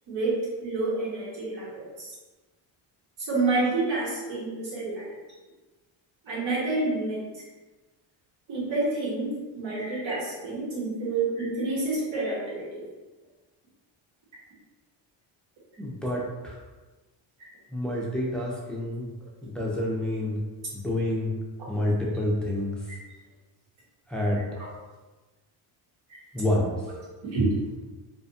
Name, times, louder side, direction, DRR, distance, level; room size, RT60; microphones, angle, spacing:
voice 1, 0.1-2.1 3.2-5.1 6.2-7.2 8.5-12.8 17.4-17.5 22.9-23.0 24.6-24.7 27.2-27.5, right 3 dB, 70° right, -6 dB, 1.2 m, -28 dB
voice 2, 15.8-16.2 17.7-19.1 19.4-20.4 20.7-21.3 21.7-22.7 24.1-24.4 26.3-26.7, left 1 dB, ahead, -4 dB, 0.3 m, -28 dB
2.5 x 2.2 x 2.6 m, 1.2 s
cardioid pair, 105°, 49 cm